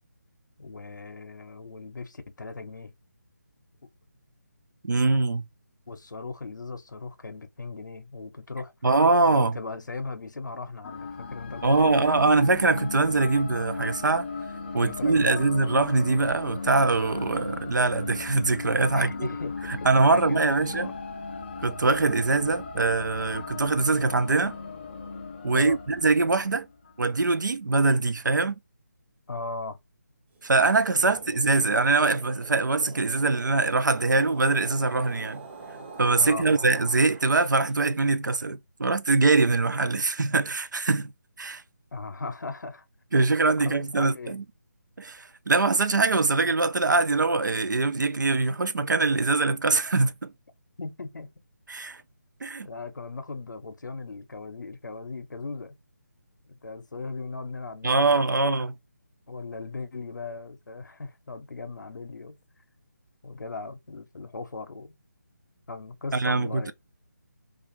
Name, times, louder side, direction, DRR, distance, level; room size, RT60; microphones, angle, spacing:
voice 1, 0.6-2.9 5.9-8.7 9.2-12.1 14.8-15.5 18.9-20.4 20.8-21.0 25.5-25.8 29.3-29.8 31.1-31.2 36.2-36.4 41.9-42.8 43.2-43.3 43.6-44.4 50.8-51.3 52.6-55.7 56.5-58.5 59.3-62.4 63.2-65.0 65.7-66.7, left 3 dB, 80° left, 0.6 m, -38 dB
voice 2, 4.8-5.5 8.8-9.6 11.6-14.3 14.7-19.3 19.7-20.9 21.6-24.6 25.4-26.7 27.0-28.6 30.4-35.4 36.0-41.1 41.4-41.6 43.1-44.4 45.0-50.3 51.7-52.0 52.4-52.7 57.8-58.7 66.1-66.7, right 3 dB, 85° right, 0.4 m, -23 dB
sound 1, 10.8-27.0, left 4 dB, 35° left, 0.3 m, -37 dB
sound 2, 30.3-37.7, right 4 dB, 40° right, 0.8 m, -44 dB
2.4 x 2.4 x 2.8 m
figure-of-eight pair, 160°, 10 cm